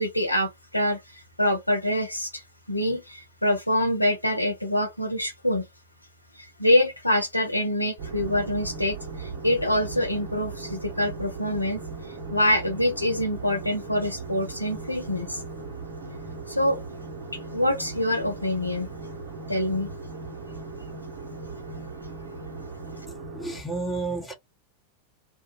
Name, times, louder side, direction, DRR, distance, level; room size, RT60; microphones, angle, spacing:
voice 1, 0.0-2.4 2.7-5.7 6.6-11.8 12.3-15.4 16.5-16.8 17.4-18.9 19.5-19.9, left 1 dB, 90° left, 0.6 m, -25 dB
sound 1, 8.0-23.6, right 4 dB, 45° right, 0.9 m, -38 dB
voice 2, 23.3-24.3, right 3 dB, 5° left, 1.0 m, -31 dB
2.3 x 2.1 x 2.9 m
figure-of-eight pair, 90°, 0 cm